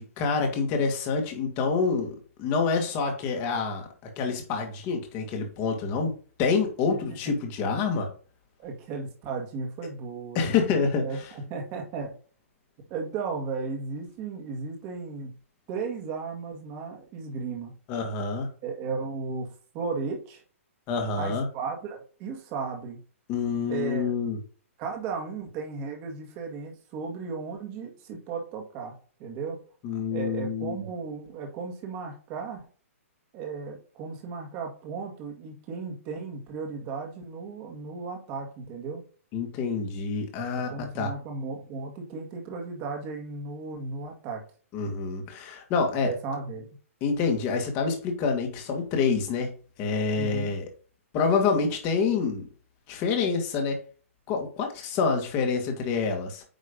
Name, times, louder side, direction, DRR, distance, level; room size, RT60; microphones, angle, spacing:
voice 1, 0.0-3.9 4.2-6.1 6.4-8.1 10.4-11.0 17.9-18.5 20.9-21.5 23.3-24.4 29.8-30.8 39.3-41.1 44.7-46.1 47.0-49.5 49.8-50.7 51.1-52.5 52.9-53.8 54.3-56.4, left 5 dB, 25° left, 3 dB, 1.8 m, -27 dB
voice 2, 8.6-10.4 11.0-12.2 12.9-15.3 15.7-17.7 18.6-20.4 21.2-23.0 23.7-24.1 24.8-29.6 30.1-32.7 33.3-39.0 40.5-44.4 46.0-46.7 50.2-50.5, right 4 dB, 25° right, 2 dB, 1.8 m, -35 dB
9.3 x 3.2 x 5.2 m, 0.41 s
hypercardioid pair, 165°, 8 cm